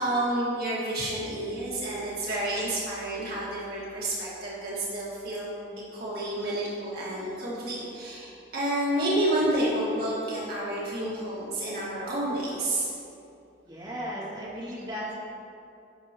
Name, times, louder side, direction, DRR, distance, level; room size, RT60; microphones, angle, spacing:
voice 1, 0.0-5.5 5.9-12.9, right 1 dB, 55° right, -7 dB, 1.8 m, -29 dB
voice 2, 13.6-15.1, equal, 25° right, -8 dB, 2.3 m, -36 dB
14.5 x 6.3 x 3.0 m, 2.6 s
head